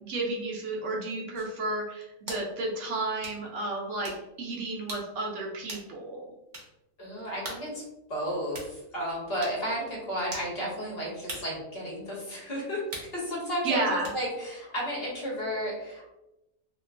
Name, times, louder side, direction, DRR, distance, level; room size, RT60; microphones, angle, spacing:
voice 1, 0.0-4.1 4.4-6.2 13.6-14.1, right 2 dB, 70° right, -2 dB, 1.0 m, -32 dB
sound 1, 1.4-1.5 2.3-2.5 3.2-3.4 4.0-4.2 4.9-5.1 5.7-5.9 6.5-6.7 7.5-7.7 8.5-8.7 9.4-9.6 10.3-10.5 11.3-11.5 12.9-13.1 14.0-14.2, right 2 dB, 40° right, 0.8 m, -40 dB
voice 2, 7.0-7.8 8.1-12.8 13.1-16.1, equal, 50° left, -5 dB, 1.2 m, -33 dB
2.9 x 2.9 x 2.5 m, 0.94 s
omnidirectional pair, 1.4 m